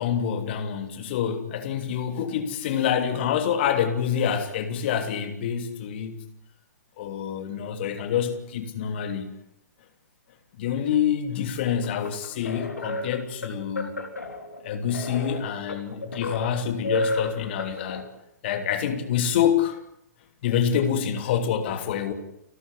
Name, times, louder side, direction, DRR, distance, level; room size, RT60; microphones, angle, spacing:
voice 1, 0.0-6.2 7.0-9.3 10.6-13.9 14.6-18.1 18.4-19.8 20.4-22.1, left 8 dB, 40° left, 3.1 m, -26 dB
sound 1, 11.8-18.0, left 1 dB, 70° left, 4.4 m, -33 dB
30.0 x 14.0 x 9.9 m
figure-of-eight pair, 120°, 9 cm